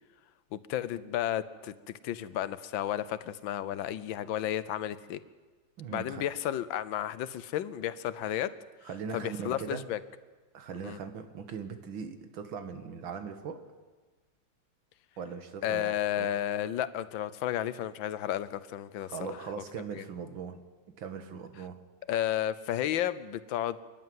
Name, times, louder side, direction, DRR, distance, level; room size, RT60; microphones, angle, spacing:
voice 1, 0.5-5.2 5.9-8.6 9.1-10.0 10.8-11.0 15.6-19.4 19.9-20.0 22.1-23.8, left 11 dB, 80° left, 15 dB, 1.6 m, -32 dB
voice 2, 5.8-6.2 8.8-9.9 10.5-13.6 15.2-16.3 19.0-20.5 21.0-21.8, right 6 dB, 85° right, 8 dB, 2.2 m, -40 dB
28.5 x 11.0 x 9.4 m, 1.4 s
omnidirectional pair, 2.1 m